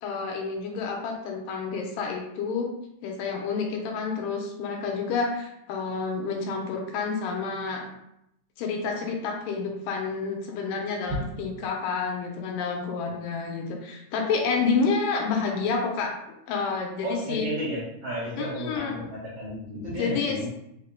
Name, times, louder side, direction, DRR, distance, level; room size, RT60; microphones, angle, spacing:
voice 1, 0.0-2.7 3.0-7.9 8.6-16.1 16.5-17.5 18.4-18.9 20.0-20.5, left 4 dB, 85° left, 1 dB, 2.4 m, -29 dB
voice 2, 17.0-20.5, equal, 65° right, -8 dB, 1.5 m, -33 dB
5.5 x 2.2 x 3.7 m, 0.80 s
omnidirectional pair, 3.9 m